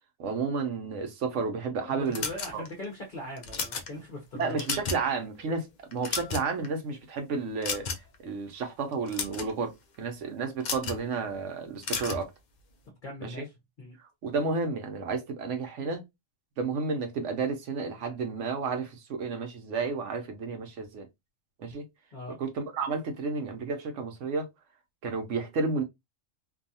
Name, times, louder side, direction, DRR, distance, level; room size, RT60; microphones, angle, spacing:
voice 1, 0.2-2.3 2.5-2.6 4.3-7.9 8.2-12.3 13.2-13.4 14.2-16.0 16.6-21.1 21.6-21.8 22.4-24.5 25.0-25.8, right 4 dB, 75° right, 1.0 m, -31 dB
voice 2, 1.8-4.7 13.0-13.5 13.8-14.0 22.1-22.4, left 1 dB, 45° left, 0.9 m, -40 dB
sound 1, 2.1-2.8 3.4-3.9 4.4-5.1 5.4-5.6 5.9-6.7 7.6-8.2 8.9-9.5 10.6-11.0 11.8-12.3, left 5 dB, 60° left, 0.4 m, -33 dB
2.6 x 2.3 x 2.6 m
omnidirectional pair, 1.3 m